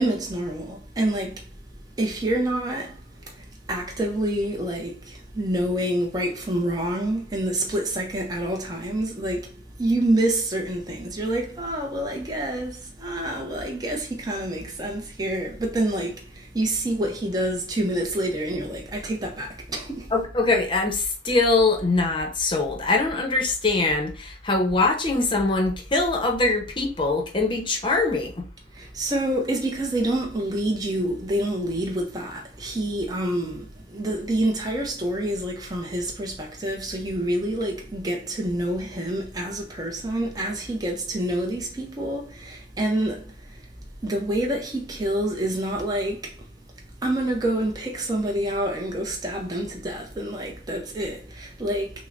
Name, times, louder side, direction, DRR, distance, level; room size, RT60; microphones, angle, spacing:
voice 1, 0.0-1.4 2.0-3.0 3.7-9.5 9.8-20.1 28.8-43.2 44.0-46.3 47.0-51.9, right 1 dB, 20° right, 0.6 m, -27 dB
voice 2, 20.1-28.5, left 3 dB, 25° left, 0.7 m, -23 dB
6.0 x 2.1 x 2.5 m
head